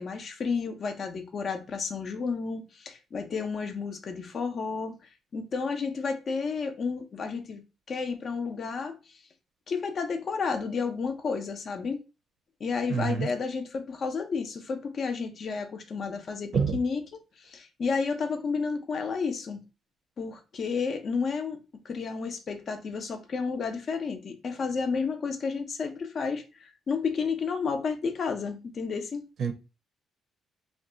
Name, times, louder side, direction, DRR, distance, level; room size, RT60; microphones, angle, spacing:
voice 1, 0.0-5.0 5.3-7.6 7.9-9.0 9.7-12.0 12.6-19.6 20.2-21.6 21.8-29.2, left 5 dB, 50° left, 0.6 m, -31 dB
voice 2, 12.9-13.3 16.5-16.8 29.4-29.5, right 6 dB, 60° right, 0.6 m, -26 dB
2.6 x 2.3 x 3.7 m
cardioid pair, 100°, 0 cm